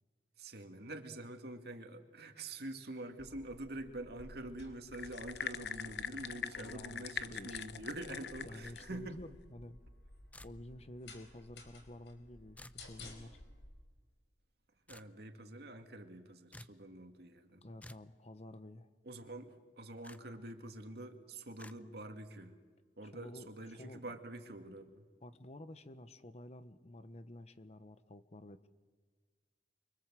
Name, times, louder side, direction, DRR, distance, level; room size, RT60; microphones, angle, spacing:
voice 1, 0.4-9.2 14.9-17.7 19.0-22.6 23.0-25.0, right 1 dB, 65° right, 6 dB, 2.3 m, -46 dB
sound 1, 3.2-13.7, left 2 dB, 85° left, 4.9 m, -56 dB
filtros en vaso plastico, 4.9-9.0, left 7 dB, 65° left, 0.9 m, -42 dB
voice 2, 6.6-8.2 8.4-9.8 10.4-13.4 17.6-18.9 23.0-24.1 25.2-28.7, left 1 dB, 40° left, 12 dB, 1.1 m, -51 dB
sound 2, 10.3-10.9 12.6-12.8 14.9-15.1 16.5-16.8 17.8-18.1 20.0-20.2 21.6-21.8, left 1 dB, 10° left, 0.7 m, -53 dB
29.0 x 24.0 x 7.6 m, 1.5 s
head